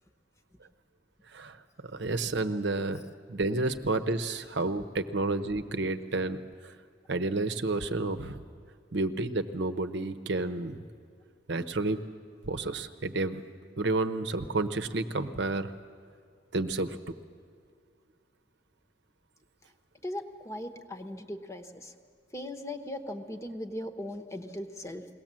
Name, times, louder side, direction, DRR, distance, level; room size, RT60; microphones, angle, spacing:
voice 1, 1.9-3.0 3.3-6.4 6.6-6.7 7.1-8.4 8.9-10.8 11.5-12.0 12.4-13.4 13.8-15.7 16.5-17.0, right 2 dB, 65° right, 9 dB, 0.9 m, -30 dB
voice 2, 20.0-21.9 22.3-25.1, left 1 dB, 15° left, 6 dB, 1.1 m, -39 dB
22.0 x 18.0 x 7.5 m, 2.2 s
head